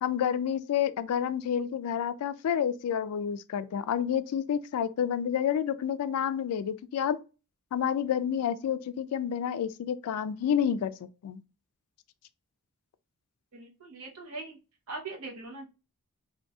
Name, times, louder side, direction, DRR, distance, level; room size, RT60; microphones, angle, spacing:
voice 1, 0.0-7.2 7.7-10.9 11.2-11.4, left 8 dB, 75° left, 0.3 m, -29 dB
voice 2, 13.5-14.6 14.9-15.7, right 3 dB, 75° right, 0.9 m, -41 dB
3.0 x 2.6 x 2.3 m
head